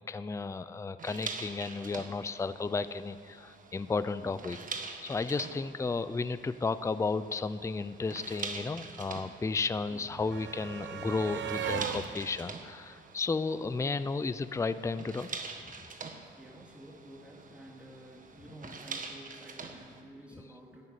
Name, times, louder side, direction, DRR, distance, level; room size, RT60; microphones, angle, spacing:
voice 1, 0.0-4.6 5.0-15.3, left 4 dB, 15° left, 13 dB, 0.5 m, -33 dB
sound 1, 1.0-20.0, right 4 dB, 40° right, 1.5 m, -45 dB
voice 2, 4.2-4.5 9.9-10.2 13.0-13.1 16.4-20.9, right 1 dB, 5° right, -2 dB, 2.6 m, -51 dB
sound 2, 7.5-7.6 7.8-14.0 15.2-15.3 15.6-15.7, right 8 dB, 65° right, 0.9 m, -41 dB
12.5 x 9.2 x 9.9 m, 2.1 s
cardioid pair, 90°, 20 cm